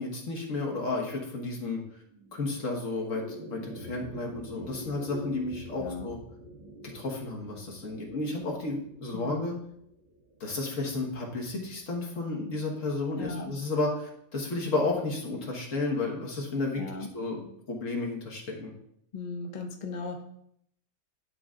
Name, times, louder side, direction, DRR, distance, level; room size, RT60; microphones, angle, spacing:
voice 1, 0.0-1.8 2.3-6.2 6.8-9.5 10.4-16.9 17.1-18.7, left 3 dB, 65° left, 0 dB, 1.8 m, -32 dB
sound 1, 2.1-12.6, right 1 dB, 45° right, 1.2 m, -47 dB
voice 2, 5.8-6.1 9.1-9.5 13.2-13.5 16.8-17.1 19.1-20.2, left 3 dB, 40° left, 2 dB, 0.7 m, -37 dB
11.0 x 3.9 x 3.7 m, 0.71 s
omnidirectional pair, 1.4 m